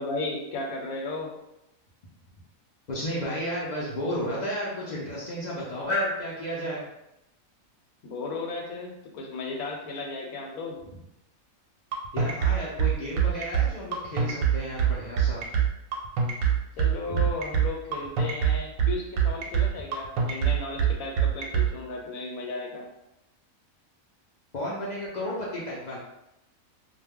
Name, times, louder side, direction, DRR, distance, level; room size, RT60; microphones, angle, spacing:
voice 1, 0.0-1.3 8.0-10.8 16.8-22.9, left 3 dB, 85° left, 0 dB, 1.1 m, -35 dB
voice 2, 2.9-6.8 12.1-15.4 17.1-17.2 24.5-26.0, equal, 60° left, -5 dB, 0.4 m, -32 dB
sound 1, 11.9-21.7, right 8 dB, 90° right, 1.0 m, -23 dB
2.2 x 2.2 x 3.4 m, 0.87 s
omnidirectional pair, 1.4 m